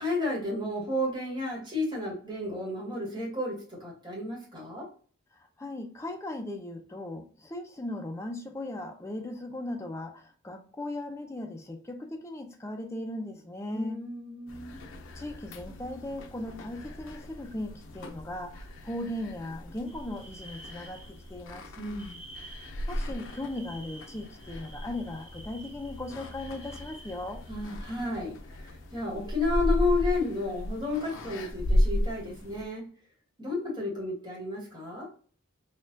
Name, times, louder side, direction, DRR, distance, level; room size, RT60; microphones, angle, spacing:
voice 1, 0.0-4.9 13.7-14.8 21.8-22.2 27.5-32.9 33.4-35.1, left 2 dB, 20° right, 1.3 m, -32 dB
voice 2, 5.3-14.0 15.1-21.7 22.9-27.4, left 1 dB, 15° left, 0.5 m, -38 dB
sound 1, 14.5-32.6, equal, 75° left, 0.6 m, -35 dB
sound 2, 19.8-21.4 21.8-27.8, right 2 dB, 5° right, 1.3 m, -51 dB
4.2 x 2.3 x 2.6 m
head